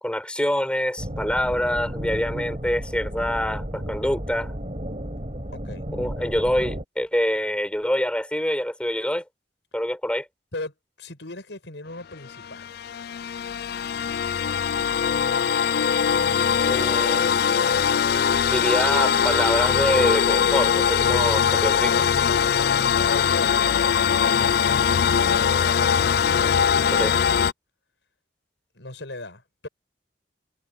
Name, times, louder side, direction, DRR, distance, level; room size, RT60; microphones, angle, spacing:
voice 1, 0.0-4.5 5.9-9.2 9.7-10.3 16.6-17.3 18.5-21.9 27.0-27.1, equal, 5° left, 4.5 m, -25 dB
sound 1, 1.0-6.8, equal, 35° right, 7.1 m, -33 dB
voice 2, 5.5-5.9 10.5-12.7 21.7-22.6 23.0-24.6 25.0-26.0 28.7-29.7, left 2 dB, 85° left, 5.6 m, -38 dB
sound 2, 12.3-27.5, left 7 dB, 60° left, 0.4 m, -21 dB
head